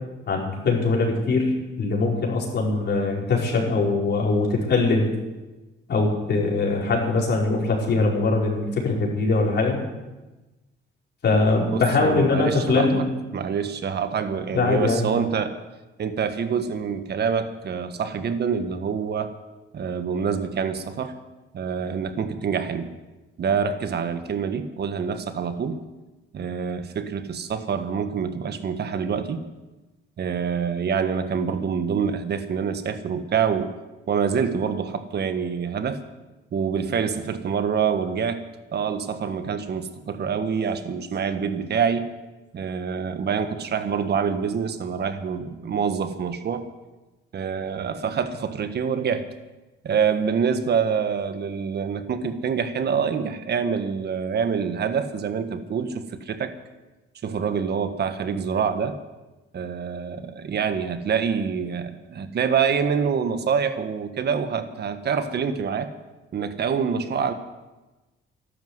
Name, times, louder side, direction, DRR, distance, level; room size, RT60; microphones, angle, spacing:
voice 1, 0.3-5.1 5.9-9.8 11.2-13.1 14.5-15.1, left 3 dB, 60° left, -2 dB, 4.9 m, -22 dB
voice 2, 11.7-13.0 13.3-15.6 16.0-19.3 19.7-21.1 21.5-22.9 23.4-25.8 26.3-29.4 30.2-33.7 34.1-36.0 36.5-38.4 38.7-42.1 42.5-46.6 47.3-49.2 49.8-56.5 57.2-59.0 59.5-65.9 66.3-67.3, right 6 dB, 55° right, 9 dB, 1.5 m, -26 dB
13.0 x 12.0 x 8.1 m, 1.1 s
cardioid pair, 90°, 20 cm